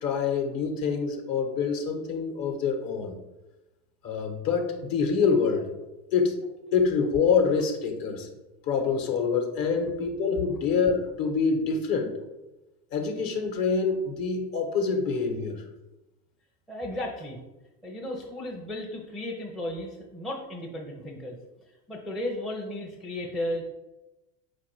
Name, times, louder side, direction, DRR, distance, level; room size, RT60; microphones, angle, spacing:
voice 1, 0.0-3.1 4.0-5.7 6.1-6.4 6.7-8.3 8.6-12.1 12.9-15.6, left 5 dB, 45° left, 3 dB, 1.0 m, -26 dB
voice 2, 16.7-17.4 17.8-21.4 21.9-23.6, left 1 dB, ahead, -2 dB, 0.4 m, -34 dB
4.1 x 2.5 x 4.5 m, 1.0 s
hypercardioid pair, 85°, 48 cm